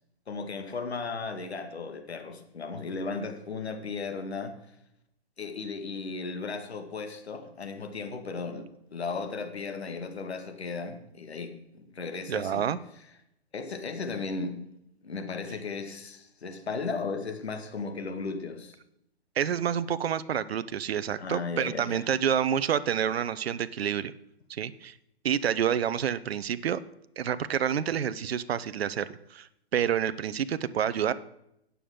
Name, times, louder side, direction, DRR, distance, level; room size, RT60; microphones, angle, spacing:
voice 1, 0.3-4.5 5.4-8.7 8.9-12.7 13.5-14.6 15.0-18.8 21.2-22.1, left 4 dB, 85° left, 6 dB, 1.9 m, -35 dB
voice 2, 12.3-12.8 19.4-24.1 24.5-24.9 25.2-26.8 27.2-31.1, right 9 dB, 75° right, 14 dB, 0.7 m, -28 dB
18.5 x 7.0 x 3.7 m, 0.79 s
hypercardioid pair, 135°, 31 cm